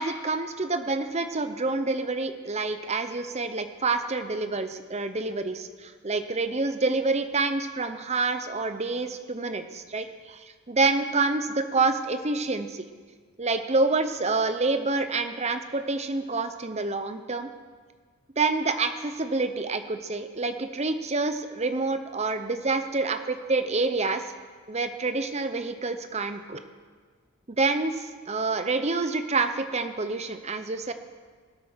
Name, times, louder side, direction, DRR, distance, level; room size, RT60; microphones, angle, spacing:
voice 1, 0.0-12.9 13.4-17.5 18.4-24.3 24.7-26.6 27.5-30.9, right 3 dB, 30° right, 9 dB, 0.8 m, -27 dB
20.0 x 8.1 x 5.8 m, 1.5 s
head